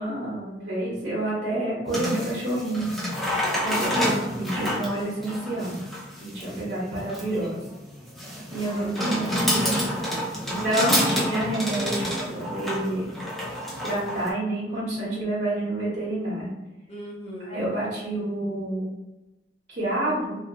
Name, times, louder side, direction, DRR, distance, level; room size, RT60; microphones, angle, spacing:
voice 1, 0.0-5.8 6.2-7.6 8.5-9.3 10.5-13.0 13.8-16.5 17.4-18.8 19.7-20.4, right 1 dB, 50° right, -8 dB, 0.8 m, -28 dB
sound 1, 1.9-14.3, equal, ahead, 0.5 m, -28 dB
voice 2, 8.6-10.5 16.9-17.7, left 1 dB, 35° left, -4 dB, 0.8 m, -39 dB
2.6 x 2.4 x 2.5 m, 1.0 s
head